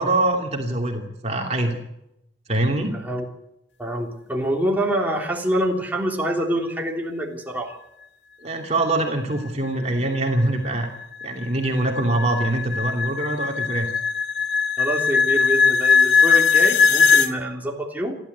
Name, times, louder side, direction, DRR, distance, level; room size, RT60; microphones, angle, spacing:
voice 1, 0.0-1.8 2.5-2.9 8.4-10.9 11.2-13.9, right 2 dB, 35° right, 1 dB, 2.7 m, -23 dB
voice 2, 2.9-3.2 3.8-7.7 14.8-18.2, right 1 dB, 10° right, 0 dB, 3.3 m, -26 dB
sound 1, 10.1-17.3, left 5 dB, 85° left, 1.6 m, -19 dB
29.5 x 12.0 x 8.2 m, 0.85 s
head